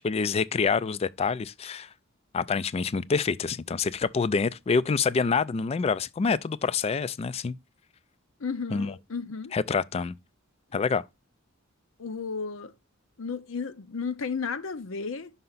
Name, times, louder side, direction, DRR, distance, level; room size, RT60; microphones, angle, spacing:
voice 1, 0.0-1.9 2.3-7.6 8.7-8.9 9.5-10.1 10.7-11.0, left 5 dB, 30° left, 0.3 m, -26 dB
voice 2, 8.4-9.5 12.0-12.7 13.2-15.3, left 5 dB, 70° left, 0.7 m, -33 dB
5.6 x 5.3 x 3.9 m
head